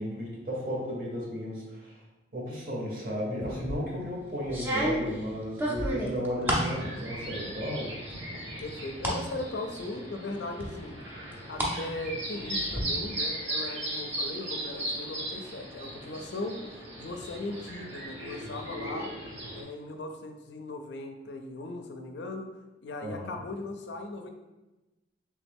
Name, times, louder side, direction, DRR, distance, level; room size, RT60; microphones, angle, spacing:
voice 1, 0.0-2.0 2.3-8.0 23.0-23.4, equal, 50° right, -3 dB, 0.9 m, -34 dB
sound 1, 3.4-3.8 4.5-6.7 7.2-7.8 8.1-9.2 9.7-9.8 10.6-11.8 12.1-12.8, equal, 10° right, 0.5 m, -31 dB
sound 2, 6.5-19.6, right 1 dB, 75° right, 1.0 m, -37 dB
voice 2, 8.6-11.0 11.5-16.6 17.0-19.1 19.5-22.5 22.8-24.3, left 2 dB, 70° left, 5 dB, 0.4 m, -38 dB
3.2 x 3.1 x 3.4 m, 1.1 s
head